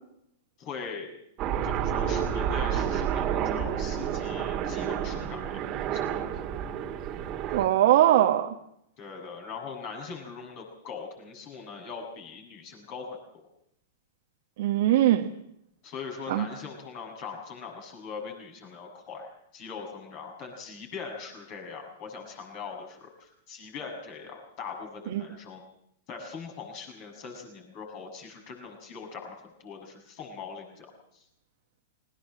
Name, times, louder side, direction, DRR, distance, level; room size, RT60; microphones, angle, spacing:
voice 1, 0.6-1.2 1.6-6.0 7.5-7.8 9.0-13.5 15.8-25.6 26.1-30.9 31.1-31.2, left 5 dB, 45° left, 3 dB, 7.2 m, -41 dB
Aircraft, 1.4-7.7, right 9 dB, 35° right, 1.9 m, -30 dB
voice 2, 7.5-8.5 14.6-15.3 16.3-16.4 25.1-25.2, right 13 dB, 60° right, 3 dB, 1.3 m, -21 dB
20.0 x 19.0 x 7.7 m, 0.75 s
hypercardioid pair, 105°, 0 cm